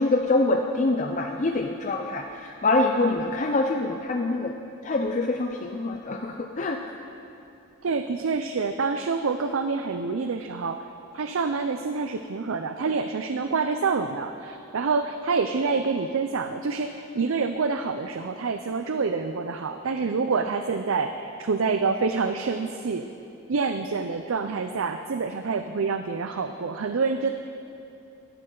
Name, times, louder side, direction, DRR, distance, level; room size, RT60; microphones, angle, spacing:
voice 1, 0.0-4.5 4.8-6.8, left 2 dB, 35° left, 3 dB, 0.5 m, -25 dB
voice 2, 7.8-10.9 11.1-23.1 23.5-27.3, right 4 dB, 75° right, 8 dB, 0.5 m, -27 dB
17.0 x 13.0 x 3.9 m, 2.7 s
head